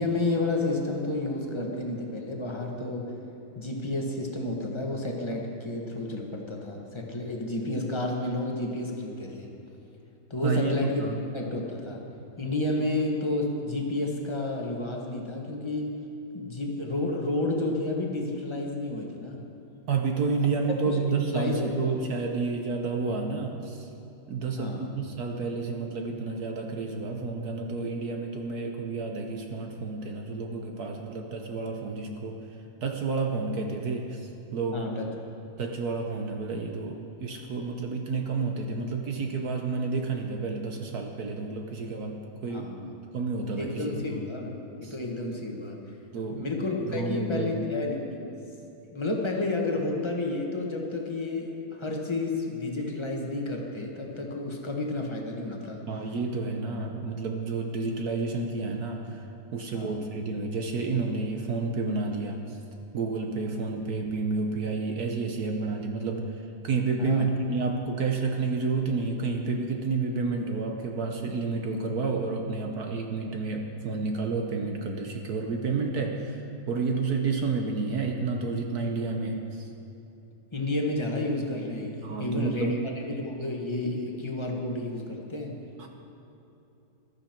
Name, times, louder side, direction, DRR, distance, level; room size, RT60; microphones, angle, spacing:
voice 1, 0.0-3.1 3.5-9.5 10.3-11.0 11.3-12.0 12.4-15.9 16.3-19.4 20.8-21.0 21.2-21.7 24.6-24.9 34.7-35.0 42.5-42.8 43.6-44.5 44.8-45.8 46.3-48.2 48.9-55.8 59.7-60.1 67.0-67.3 80.5-85.6, left 2 dB, 20° left, 0 dB, 1.0 m, -31 dB
voice 2, 10.4-10.7 11.0-11.2 19.9-23.8 24.3-32.4 32.8-34.9 35.6-42.8 43.1-44.2 44.8-44.9 46.1-46.4 46.9-47.6 55.9-62.6 62.9-76.4 76.7-79.7 82.0-82.8 85.8-85.9, right 4 dB, 55° right, 3 dB, 1.2 m, -30 dB
14.5 x 12.0 x 4.4 m, 2.9 s
omnidirectional pair, 2.3 m